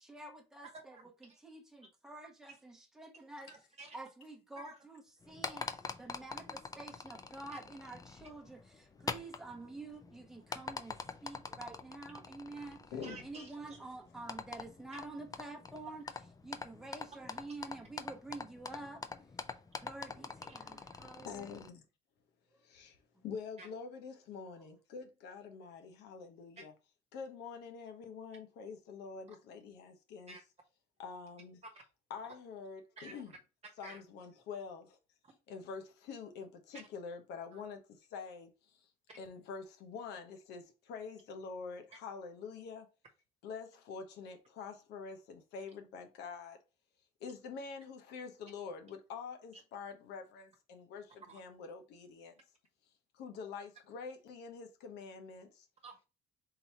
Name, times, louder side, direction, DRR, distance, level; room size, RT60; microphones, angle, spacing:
voice 1, 0.0-3.5 3.9-12.8 13.2-16.1 16.4-19.0 19.8-21.5, right 2 dB, 5° right, 0.9 m, -48 dB
voice 2, 3.5-4.0 4.6-4.7 13.0-13.5 23.6-23.7 30.3-30.4 33.0-33.2 33.8-34.0 37.5-37.6 51.3-51.4 55.8-56.0, right 3 dB, 40° right, 1.1 m, -51 dB
sound 1, 5.2-21.7, left 4 dB, 20° left, 0.4 m, -46 dB
voice 3, 12.9-13.3 21.2-21.8 22.6-26.7 27.1-30.4 31.0-31.6 32.1-33.3 33.8-35.0 35.5-38.9 39.2-42.9 43.4-46.6 47.2-52.4 53.1-55.7, left 5 dB, 80° left, 0.9 m, -46 dB
3.9 x 2.7 x 4.4 m
cardioid pair, 110°, 17 cm